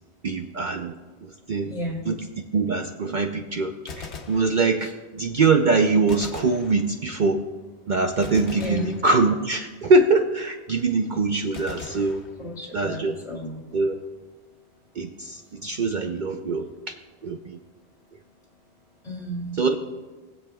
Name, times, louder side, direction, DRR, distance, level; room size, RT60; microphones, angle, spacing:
voice 1, 0.2-0.9 1.2-1.7 2.1-2.3 2.5-3.8 4.3-4.9 5.1-7.4 7.9-12.2 12.7-13.2 13.7-14.0 15.0-16.7 17.2-17.6 19.6-19.7, right 3 dB, 50° right, 4 dB, 0.7 m, -23 dB
voice 2, 1.7-2.1 8.5-8.8 12.4-13.6 19.0-19.6, equal, 35° left, -2 dB, 2.7 m, -33 dB
Gunshot gunfire, 3.9-5.1 6.1-7.3 8.2-9.7 11.5-12.9, left 4 dB, 80° left, 1.2 m, -41 dB
21.5 x 7.6 x 2.3 m, 1.3 s
omnidirectional pair, 1.1 m